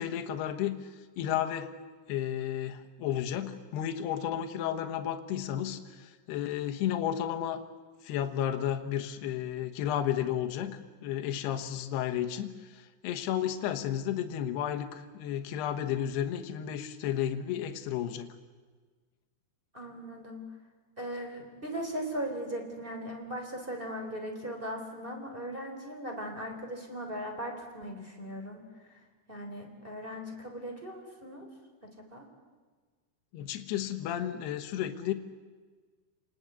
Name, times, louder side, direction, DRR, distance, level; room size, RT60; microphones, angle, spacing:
voice 1, 0.0-1.7 2.1-7.6 8.0-10.7 11.0-18.3 33.3-35.1, left 10 dB, 70° left, 6 dB, 3.2 m, -32 dB
voice 2, 19.7-20.4 21.0-28.6 29.3-31.5 32.1-32.3, equal, 15° right, 3 dB, 3.3 m, -38 dB
29.0 x 19.5 x 8.1 m, 1.5 s
omnidirectional pair, 5.1 m